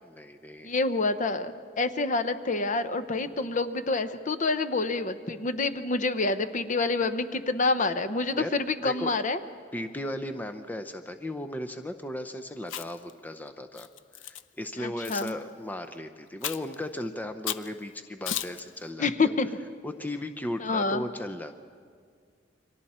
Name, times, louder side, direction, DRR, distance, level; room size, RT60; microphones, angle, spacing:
voice 1, 0.0-0.7 3.2-3.4 8.4-9.1 9.7-13.9 14.1-19.3 19.8-21.6, left 1 dB, 10° left, 7 dB, 0.6 m, -36 dB
voice 2, 0.6-9.4 14.8-15.3 19.0-19.5 20.6-21.0, left 3 dB, 40° left, 10 dB, 0.8 m, -27 dB
Chewing mastication, 12.6-13.1 13.8-14.4 15.0-15.3 16.4-16.8 17.5-17.7 18.3-18.6, left 10 dB, 80° left, 0.6 m, -34 dB
29.5 x 24.0 x 4.3 m, 2.1 s
head